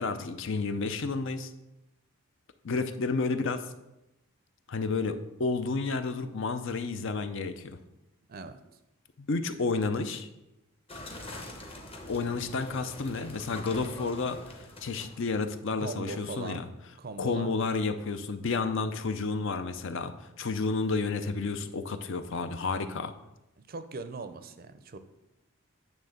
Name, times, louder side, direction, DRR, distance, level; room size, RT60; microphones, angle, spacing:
voice 1, 0.0-1.5 2.6-3.6 4.7-7.8 9.2-10.3 12.1-16.7 17.2-23.1, left 4 dB, 55° left, 9 dB, 0.5 m, -31 dB
sound 1, 10.9-15.4, left 1 dB, 25° left, 0.9 m, -44 dB
voice 2, 15.8-16.6 17.0-17.5 23.7-25.0, right 3 dB, 40° right, 10 dB, 0.5 m, -40 dB
9.0 x 3.5 x 6.5 m, 0.93 s
head